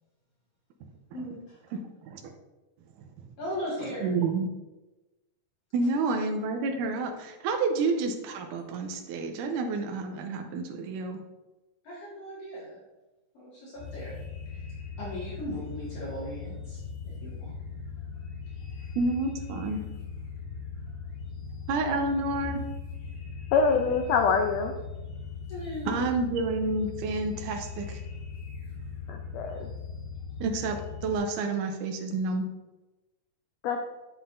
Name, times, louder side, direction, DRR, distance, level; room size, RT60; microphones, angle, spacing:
voice 1, 1.1-1.6 3.4-4.2 11.8-12.8 13.3-14.1 14.5-14.6 15.0-16.8 17.0-17.5 18.7-18.9 25.5-26.2, equal, 55° left, -7 dB, 2.8 m, -38 dB
voice 2, 4.0-4.5 5.7-11.2 19.0-19.8 21.7-22.6 25.9-28.0 30.4-32.5, right 3 dB, 85° right, 4 dB, 2.2 m, -29 dB
sound 1, 13.8-31.2, left 5 dB, 70° left, 3.1 m, -39 dB
voice 3, 23.5-24.8 29.1-29.7 33.6-33.8, left 5 dB, 90° left, 4 dB, 1.5 m, -25 dB
7.8 x 7.4 x 2.6 m, 1.1 s
omnidirectional pair, 3.6 m